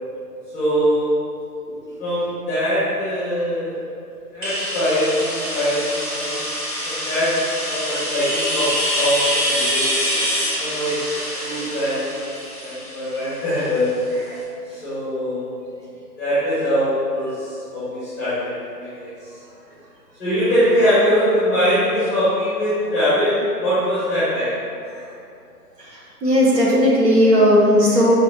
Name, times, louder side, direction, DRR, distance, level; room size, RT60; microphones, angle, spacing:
voice 1, 0.5-1.1 2.0-3.7 4.3-6.5 6.8-9.8 10.6-11.0 11.4-12.0 12.6-13.9 14.7-15.4 16.2-19.1 20.2-24.5, equal, 10° left, -12 dB, 0.7 m, -22 dB
sound 1, 4.4-14.0, equal, 25° right, 0.9 m, -25 dB
voice 2, 25.8-28.2, equal, 80° right, -5 dB, 1.2 m, -16 dB
5.2 x 2.9 x 2.3 m, 2.6 s
figure-of-eight pair, 140°, 48 cm